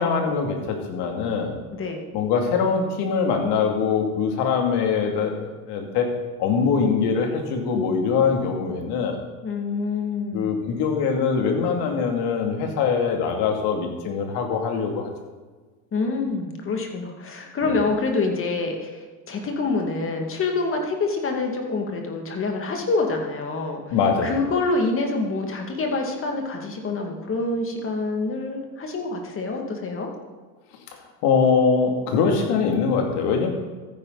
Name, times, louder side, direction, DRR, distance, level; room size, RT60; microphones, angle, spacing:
voice 1, 0.0-1.6 2.1-6.1 6.4-9.2 10.3-15.1 17.6-17.8 23.9-24.4 31.2-33.5, left 5 dB, 55° left, 3 dB, 2.8 m, -23 dB
voice 2, 1.7-2.0 9.4-10.6 15.9-23.8 24.2-30.1, left 3 dB, 25° left, 3 dB, 2.3 m, -26 dB
14.0 x 10.0 x 4.1 m, 1.4 s
supercardioid pair, 120°, 46 cm